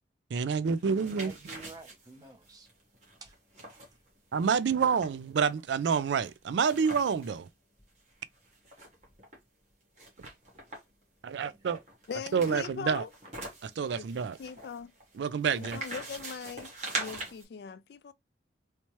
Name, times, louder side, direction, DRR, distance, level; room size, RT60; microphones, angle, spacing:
voice 1, 0.3-1.3 4.3-7.5 11.3-11.8 12.3-13.0 13.6-14.4 15.2-15.8, right 6 dB, 90° right, 0.4 m, -28 dB
sound 1, 0.7-7.4 7.8-7.9 8.1-9.4 10.0-11.0 11.7-17.4, right 2 dB, 40° right, 1.3 m, -43 dB
voice 2, 1.1-2.7 3.1-3.3 3.7-4.0 11.4-11.6, right 3 dB, 20° right, 0.7 m, -51 dB
voice 3, 12.1-13.1 14.0-14.1 14.4-14.9 15.6-16.7 17.0-18.1, left 6 dB, 65° left, 0.3 m, -40 dB
3.2 x 2.9 x 3.0 m
head